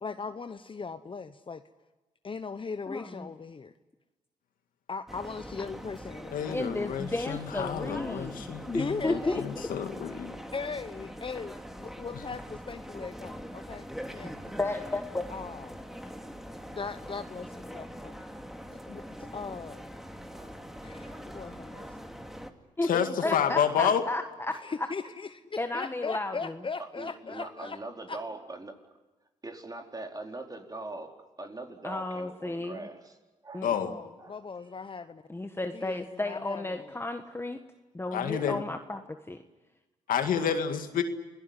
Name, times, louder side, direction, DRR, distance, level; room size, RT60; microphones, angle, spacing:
voice 1, 0.0-1.6 2.2-3.7 4.9-6.6 8.7-9.4 10.5-14.5 15.3-15.8 16.7-18.3 18.9-19.8 20.8-22.0 22.9-23.6 24.6-27.8 28.1-28.2 33.7-35.2 35.7-36.9, left 5 dB, 40° left, 11 dB, 1.0 m, -39 dB
voice 2, 2.9-3.3 6.5-9.7 14.6-15.3 22.8-22.9 23.2-24.9 25.6-26.5 31.8-32.8 33.5-34.0 35.3-37.6 37.9-39.4, left 2 dB, 15° left, 6 dB, 1.5 m, -33 dB
sound 1, 5.1-22.5, equal, ahead, 2.6 m, -43 dB
voice 3, 6.3-10.4 22.9-24.0 33.6-33.9 38.1-38.6 40.1-41.0, left 8 dB, 80° left, 7 dB, 2.1 m, -29 dB
voice 4, 20.3-20.6 21.0-21.3 21.7-22.0 27.0-28.8 29.4-31.1 31.4-33.2 33.4-33.7 34.2-34.7, right 2 dB, 25° right, 3 dB, 4.5 m, -42 dB
28.0 x 17.5 x 9.9 m, 1.1 s
supercardioid pair, 60°, 14 cm